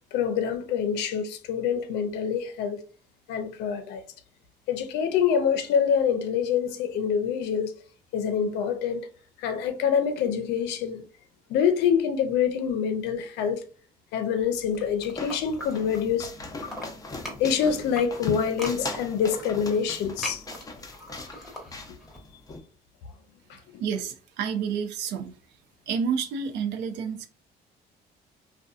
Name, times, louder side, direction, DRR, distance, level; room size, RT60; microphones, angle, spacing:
voice 1, 0.1-2.8 3.3-4.0 4.7-7.7 8.1-9.1 9.4-11.0 11.5-13.6 14.1-16.3 17.4-20.4 23.5-23.6, left 7 dB, 85° left, 0.5 m, -26 dB
sound 1, 14.4-22.6, left 2 dB, 20° left, 0.6 m, -41 dB
sound 2, 14.6-16.3 16.6-22.2, left 1 dB, ahead, 1.0 m, -40 dB
voice 2, 23.8-25.3 25.9-27.3, right 7 dB, 85° right, 0.5 m, -29 dB
2.6 x 2.2 x 2.3 m
cardioid pair, 110°, 17 cm